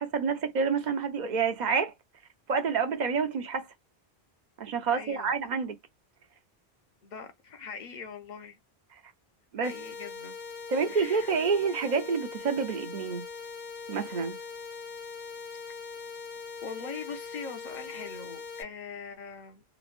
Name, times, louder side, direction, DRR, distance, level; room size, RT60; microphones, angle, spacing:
voice 1, 0.0-1.9 2.5-3.7 4.6-5.8 9.5-9.7 10.7-13.2 13.9-14.3, right 5 dB, 50° right, 0.7 m, -28 dB
voice 2, 4.9-5.3 7.0-8.6 9.6-10.4 10.9-11.4 16.6-19.6, left 5 dB, 50° left, 0.8 m, -42 dB
sound 1, 9.6-18.6, left 5 dB, 80° left, 1.1 m, -41 dB
3.1 x 2.2 x 2.4 m
omnidirectional pair, 1.1 m